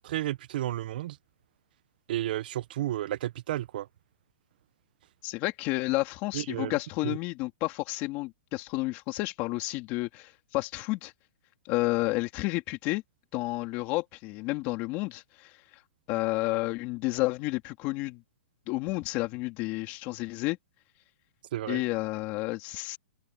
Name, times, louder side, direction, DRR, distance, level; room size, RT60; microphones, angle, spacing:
voice 1, 0.0-1.2 2.1-3.9 6.3-6.7 7.0-7.2 21.5-21.8, right 13 dB, 50° right, 0.5 m, -32 dB
voice 2, 5.2-11.1 11.6-13.0 13.3-15.6 16.1-18.2 18.7-20.6 21.7-23.0, left 21 dB, 30° left, 3.2 m, -31 dB
open air
hypercardioid pair, 160°, 6 cm